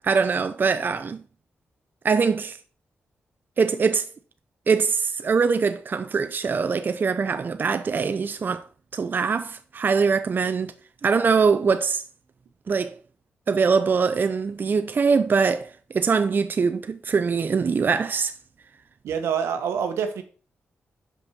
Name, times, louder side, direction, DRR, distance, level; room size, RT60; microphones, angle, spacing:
voice 1, 0.0-1.2 2.0-2.6 3.6-4.1 4.7-8.7 8.9-10.7 11.0-12.0 12.7-13.0 13.5-18.3, right 5 dB, 50° right, 0.5 m, -23 dB
voice 2, 19.0-20.2, right 7 dB, 90° right, 1.0 m, -26 dB
6.1 x 5.3 x 5.6 m
cardioid pair, 55°, 4 cm